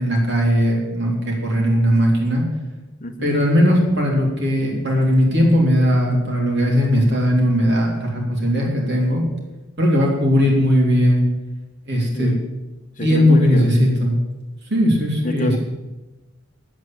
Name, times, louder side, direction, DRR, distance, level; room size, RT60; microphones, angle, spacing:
voice 1, 0.0-2.4 3.2-9.2 9.8-11.2 11.9-12.3 13.0-14.1 14.7-15.6, equal, 55° right, -1 dB, 3.4 m, -18 dB
voice 2, 12.1-12.5 13.0-13.8 15.2-15.6, left 1 dB, 40° left, 8 dB, 1.0 m, -26 dB
9.4 x 8.2 x 9.0 m, 1.1 s
head